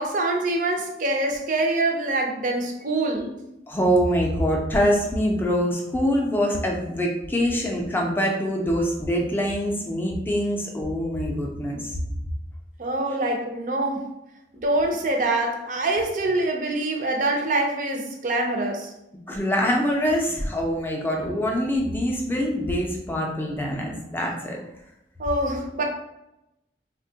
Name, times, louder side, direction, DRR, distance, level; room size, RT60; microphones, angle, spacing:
voice 1, 0.0-3.3 12.8-14.1 14.5-18.9 25.2-25.8, right 2 dB, 45° right, 2 dB, 0.5 m, -25 dB
voice 2, 3.7-12.0 19.3-24.6, equal, 10° left, -1 dB, 0.4 m, -24 dB
3.4 x 2.2 x 2.7 m, 0.89 s
head